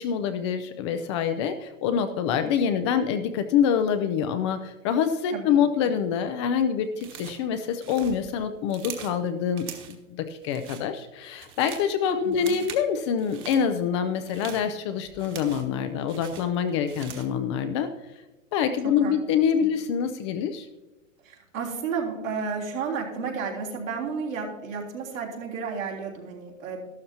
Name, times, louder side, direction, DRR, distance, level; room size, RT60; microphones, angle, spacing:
voice 1, 0.0-17.9 18.5-20.7, left 7 dB, 25° left, 8 dB, 0.4 m, -26 dB
voice 2, 5.3-5.9 12.1-12.6 18.8-19.1 21.2-26.8, right 5 dB, 80° right, -3 dB, 3.5 m, -32 dB
sound 1, 7.0-7.5 7.8-9.2 9.6-10.0 10.4-10.9 11.2-11.9 12.3-12.9 13.2-13.6 14.1-15.8 16.1-17.4, right 8 dB, 30° right, 1.3 m, -42 dB
13.0 x 12.0 x 2.8 m, 1.1 s
hypercardioid pair, 130°, 39 cm